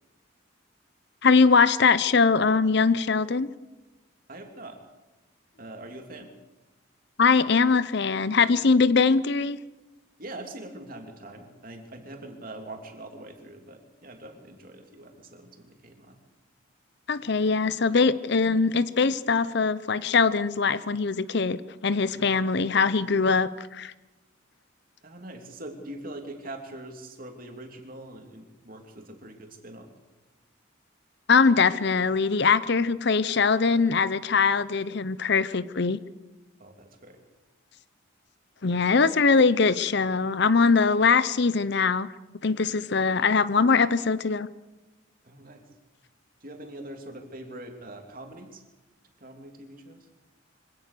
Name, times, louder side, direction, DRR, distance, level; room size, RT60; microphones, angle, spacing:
voice 1, 1.2-3.5 7.2-9.6 17.1-23.9 31.3-36.0 38.6-42.1 42.4-44.5, left 4 dB, 55° left, 16 dB, 0.7 m, -22 dB
voice 2, 4.3-4.8 5.6-6.3 10.2-16.2 22.1-22.3 25.0-29.9 36.6-37.2 38.7-39.2 45.2-45.7 46.4-48.6 49.2-50.1, right 1 dB, 45° right, 4 dB, 3.0 m, -43 dB
24.5 x 17.5 x 6.8 m, 1.1 s
head